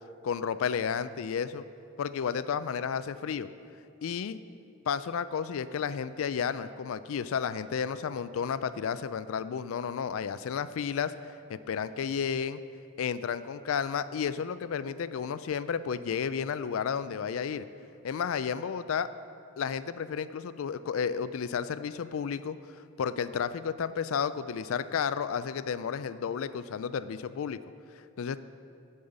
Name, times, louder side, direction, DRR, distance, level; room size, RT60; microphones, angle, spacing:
voice 1, 0.2-1.6 2.0-3.5 4.0-4.4 4.9-12.6 13.0-17.7 18.0-19.1 19.6-22.6 23.0-27.6 28.2-28.4, left 7 dB, 70° left, 14 dB, 0.4 m, -32 dB
8.5 x 5.6 x 8.0 m, 2.6 s
head